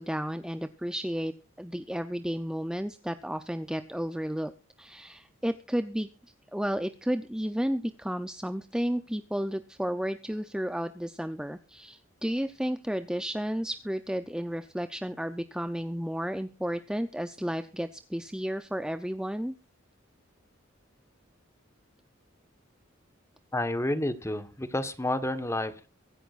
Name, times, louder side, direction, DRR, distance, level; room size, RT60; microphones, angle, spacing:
voice 1, 0.0-4.5 4.8-6.1 6.5-19.5, equal, 5° right, 9 dB, 0.6 m, -32 dB
voice 2, 23.5-25.9, left 1 dB, 15° left, 11 dB, 1.3 m, -30 dB
23.5 x 11.0 x 2.5 m, 0.33 s
head